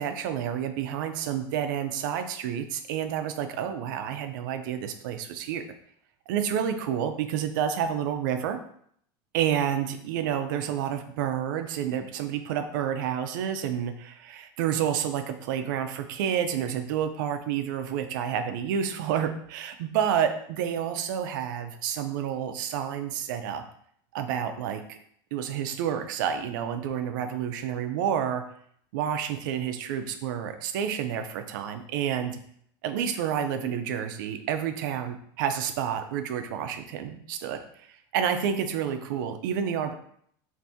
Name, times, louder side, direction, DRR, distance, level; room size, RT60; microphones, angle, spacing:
voice 1, 0.0-5.7 6.3-8.6 9.3-23.6 24.1-25.0 25.3-28.5 28.9-32.4 32.8-37.6 37.9-39.9, right 9 dB, 75° right, 8 dB, 0.4 m, -29 dB
2.6 x 2.6 x 3.4 m, 0.66 s
supercardioid pair, 140°, 11 cm